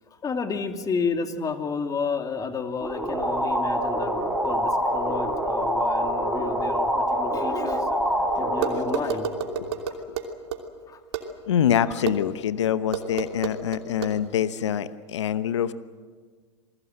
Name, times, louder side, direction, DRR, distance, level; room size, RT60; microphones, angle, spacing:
voice 1, 0.1-9.3 9.9-10.0 10.9-11.0 11.7-12.1 12.5-12.7, left 5 dB, 25° left, 6 dB, 2.5 m, -31 dB
sound 1, 2.8-10.2, equal, ahead, 4.6 m, -26 dB
sound 2, 8.6-10.6 11.1-11.2 12.1-12.2 12.9-14.1, right 10 dB, 65° right, 3.0 m, -29 dB
voice 2, 11.4-15.7, left 9 dB, 75° left, 14 dB, 0.9 m, -25 dB
28.0 x 21.0 x 7.8 m, 1.5 s
hypercardioid pair, 95°, 15 cm